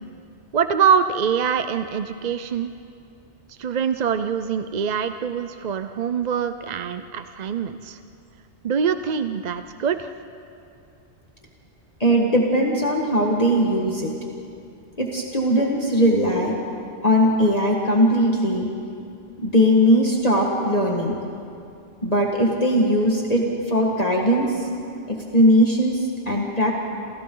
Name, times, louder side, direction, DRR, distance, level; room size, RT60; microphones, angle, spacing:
voice 1, 0.5-2.7 3.5-8.0 8.6-10.1, right 7 dB, 50° right, 9 dB, 0.6 m, -24 dB
voice 2, 12.0-14.1 15.0-16.5 17.0-18.7 19.4-21.2 22.0-24.7 25.1-26.7, equal, 35° left, -1 dB, 1.8 m, -19 dB
28.5 x 28.0 x 3.9 m, 2.6 s
omnidirectional pair, 1.2 m